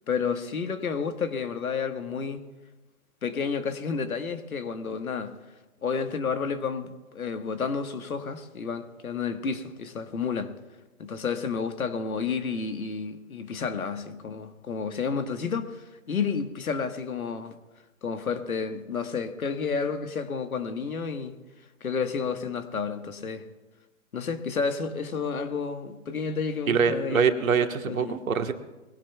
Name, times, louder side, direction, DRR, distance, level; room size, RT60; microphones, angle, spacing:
voice 1, 0.1-2.4 3.2-5.4 5.8-10.5 11.0-17.6 18.0-21.4 21.8-23.4 24.1-27.3 27.8-28.2, left 5 dB, 90° left, 1.6 m, -31 dB
voice 2, 26.7-28.5, right 6 dB, 75° right, 1.5 m, -24 dB
22.0 x 17.0 x 2.3 m
hypercardioid pair, 150°, 42 cm